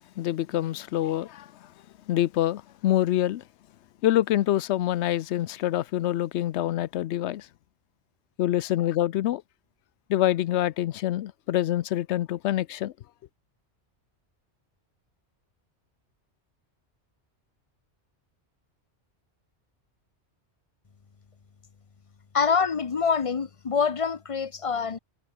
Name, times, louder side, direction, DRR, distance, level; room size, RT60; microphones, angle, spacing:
voice 1, 0.2-1.5 2.1-3.4 4.0-7.5 8.4-9.4 10.1-12.9, left 13 dB, 80° left, 0.9 m, -26 dB
voice 2, 22.3-25.0, left 5 dB, 35° left, 0.7 m, -25 dB
omnidirectional pair, 1.2 m